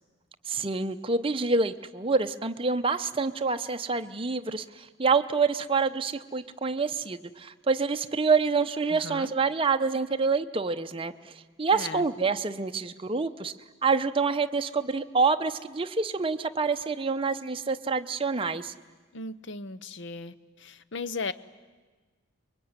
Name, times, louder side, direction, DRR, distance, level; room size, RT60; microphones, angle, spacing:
voice 1, 0.4-13.5 13.8-18.7, right 4 dB, 25° right, 8 dB, 0.8 m, -27 dB
voice 2, 8.9-9.3 11.7-12.1 19.1-21.3, left 3 dB, 60° left, 16 dB, 0.8 m, -37 dB
24.5 x 22.5 x 9.6 m, 1.4 s
head